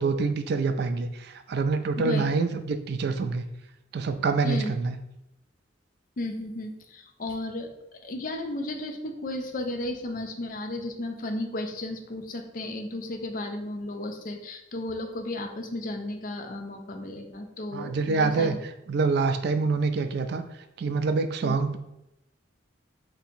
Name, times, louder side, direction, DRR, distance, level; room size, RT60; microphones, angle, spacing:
voice 1, 0.0-3.4 3.9-5.0 17.7-18.6 18.9-20.4 20.8-21.8, right 4 dB, 55° right, 8 dB, 0.3 m, -26 dB
voice 2, 2.0-2.3 4.4-4.7 6.2-7.7 8.0-18.6 21.4-21.6, left 1 dB, 45° left, 4 dB, 0.4 m, -34 dB
2.8 x 2.7 x 4.2 m, 0.84 s
head